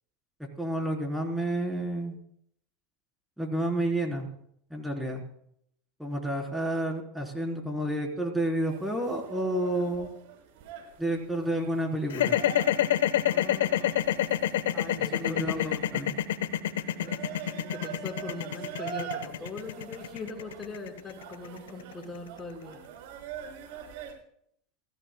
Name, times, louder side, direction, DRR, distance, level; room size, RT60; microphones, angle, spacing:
voice 1, 0.6-2.2 3.4-4.3 4.7-5.2 6.0-10.1 11.0-12.4 15.0-16.2, right 1 dB, 5° right, 1 dB, 3.9 m, -30 dB
sound 1, 8.6-24.1, right 8 dB, 70° right, 6.1 m, -44 dB
sound 2, 12.1-22.3, left 11 dB, 85° left, 1.1 m, -27 dB
voice 2, 13.2-14.0 14.7-15.9 17.0-17.2 17.7-22.8, left 3 dB, 20° left, 0 dB, 5.0 m, -41 dB
29.0 x 15.5 x 2.3 m, 0.70 s
hypercardioid pair, 100°, 0 cm